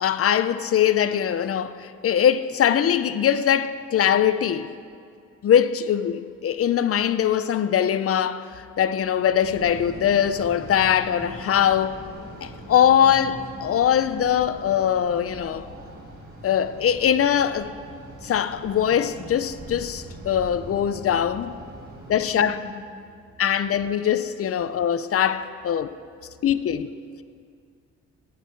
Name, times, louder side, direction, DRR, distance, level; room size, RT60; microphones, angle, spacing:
voice 1, 0.0-4.7 5.4-8.5 8.8-12.0 12.4-15.7 16.4-17.7 18.2-21.6 22.1-22.6 23.4-26.0 26.4-26.9, left 9 dB, 50° left, 0.6 m, -22 dB
sound 1, 9.4-22.3, right 1 dB, 35° right, 3.9 m, -41 dB
voice 2, 21.7-23.4 26.3-26.4, right 2 dB, 85° right, 2.0 m, -44 dB
17.0 x 10.0 x 4.6 m
cardioid pair, 90°, 30 cm